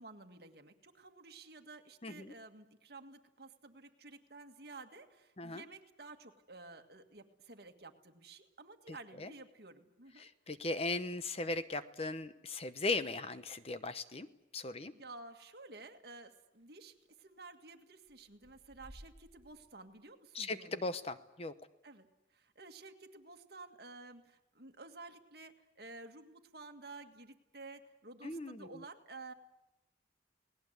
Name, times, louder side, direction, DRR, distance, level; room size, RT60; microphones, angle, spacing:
voice 1, 0.0-10.3 14.9-21.0 21.8-29.3, right 3 dB, 60° right, 5 dB, 2.0 m, -53 dB
voice 2, 2.0-2.3 5.4-5.6 8.9-9.3 10.2-14.3 14.5-14.9 20.3-21.6 28.2-28.7, left 3 dB, 35° left, 12 dB, 0.9 m, -38 dB
sound 1, 15.4-15.5 16.5-16.6 16.9-17.5 18.1-20.0, equal, 30° right, 6.0 m, -58 dB
29.0 x 19.5 x 8.2 m, 0.95 s
head